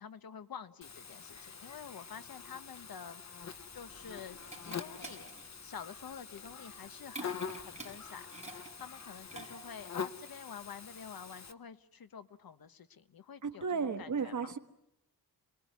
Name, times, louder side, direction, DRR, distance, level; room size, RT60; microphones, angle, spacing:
voice 1, 0.0-3.2 3.5-4.4 4.6-5.3 5.6-7.4 7.7-14.5, left 7 dB, 70° left, 12 dB, 1.2 m, -48 dB
Buzz, 0.8-11.5, left 6 dB, 45° left, 1.1 m, -45 dB
sound 1, 3.4-9.9, right 2 dB, 20° right, 5.3 m, -50 dB
voice 2, 13.4-14.6, right 5 dB, 50° right, 7 dB, 1.6 m, -34 dB
27.5 x 21.0 x 9.6 m, 0.84 s
wide cardioid pair, 160°, 37 cm